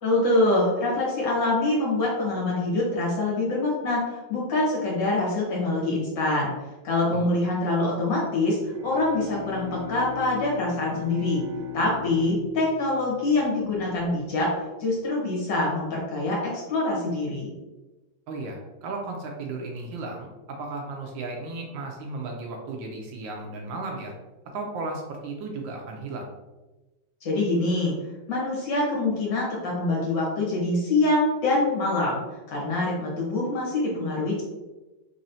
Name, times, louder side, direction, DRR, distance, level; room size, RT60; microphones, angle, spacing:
voice 1, 0.0-6.5 6.8-8.6 8.8-11.4 11.7-14.5 14.8-17.5 27.2-28.0 28.3-32.2 32.5-34.4, left 2 dB, 60° left, -5 dB, 1.7 m, -25 dB
Bowed string instrument, 8.6-14.1, left 7 dB, 90° right, 1.5 m, -38 dB
voice 2, 18.3-24.1 24.5-26.3, right 3 dB, 75° right, 1 dB, 1.3 m, -35 dB
4.2 x 3.0 x 2.7 m, 1.1 s
omnidirectional pair, 2.3 m